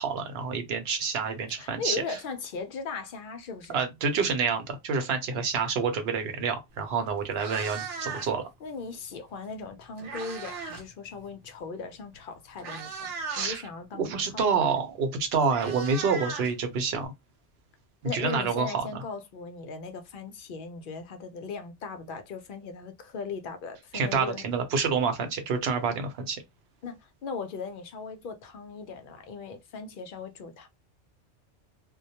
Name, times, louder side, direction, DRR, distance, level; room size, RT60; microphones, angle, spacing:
voice 1, 0.0-2.0 3.7-8.4 13.3-13.6 14.0-17.1 18.0-18.9 23.9-26.4, right 5 dB, 65° right, 0.9 m, -28 dB
voice 2, 1.5-3.8 8.6-14.8 18.0-24.4 26.8-30.7, left 4 dB, 60° left, 0.6 m, -38 dB
Meow, 6.7-6.9 7.2-8.5 9.6-10.9 11.2-11.4 12.1-12.2 12.6-13.5 14.8-14.9 15.2-17.1, right 5 dB, 90° right, 1.1 m, -38 dB
2.2 x 2.1 x 2.7 m
omnidirectional pair, 1.2 m